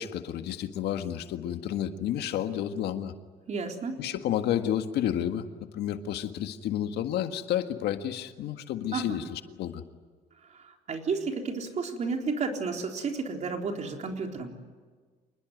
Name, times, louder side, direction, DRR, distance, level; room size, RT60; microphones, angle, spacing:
voice 1, 0.0-3.1 4.0-5.5 5.7-9.8, left 10 dB, 75° left, 8 dB, 1.8 m, -31 dB
voice 2, 3.5-4.0 8.9-9.2 10.5-14.6, right 4 dB, 45° right, 3 dB, 4.0 m, -32 dB
27.0 x 20.5 x 9.4 m, 1.5 s
cardioid pair, 110°, 17 cm